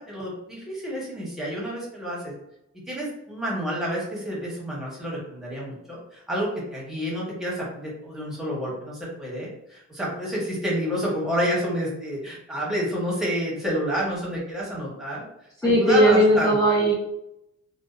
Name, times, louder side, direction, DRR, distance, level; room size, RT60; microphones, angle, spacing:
voice 1, 0.0-2.3 2.9-15.2 15.6-16.5, equal, ahead, -6 dB, 0.9 m, -29 dB
voice 2, 15.6-16.9, equal, 15° left, -5 dB, 0.4 m, -18 dB
2.6 x 2.2 x 2.3 m, 0.83 s
wide cardioid pair, 150°, 29 cm